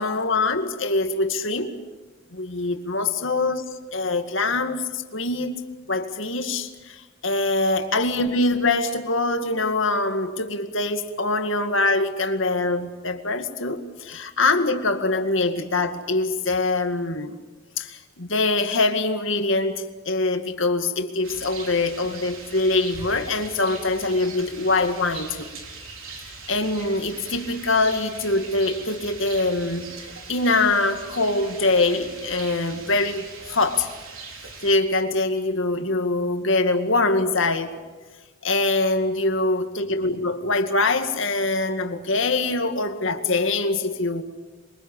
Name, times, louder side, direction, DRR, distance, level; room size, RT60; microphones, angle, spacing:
voice 1, 0.0-1.8 2.3-5.6 5.9-17.4 17.8-25.5 26.5-29.9 30.3-33.9 34.6-37.7 38.4-44.2, left 2 dB, 65° left, 2.2 m, -23 dB
Rain, 21.2-34.8, right 4 dB, 70° right, 4.3 m, -40 dB
28.0 x 23.5 x 7.2 m
head